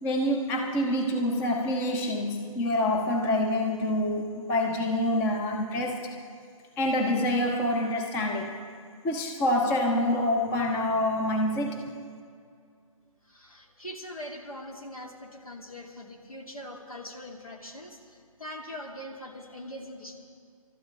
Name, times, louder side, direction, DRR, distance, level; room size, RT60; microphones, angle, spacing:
voice 1, 0.0-6.2 6.8-8.6 9.0-11.8, left 1 dB, 10° left, 0.7 m, -26 dB
voice 2, 13.2-20.2, left 1 dB, 80° left, 2.5 m, -42 dB
29.0 x 12.5 x 3.3 m
figure-of-eight pair, 135°, 18 cm